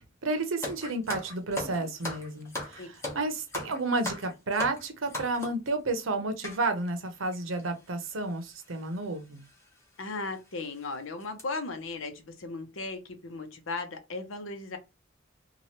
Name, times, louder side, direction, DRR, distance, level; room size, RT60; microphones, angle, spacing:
voice 1, 0.2-9.4, right 2 dB, 85° right, 0.8 m, -31 dB
sound 1, 0.6-5.7 6.4-6.6 7.3-7.4 7.6-7.8 8.8-9.0 9.4-9.5 10.1-10.2 10.6-10.8 11.2-11.4, left 2 dB, 15° left, 0.9 m, -38 dB
voice 2, 10.0-14.8, left 3 dB, 80° left, 0.8 m, -36 dB
3.0 x 2.4 x 2.8 m
head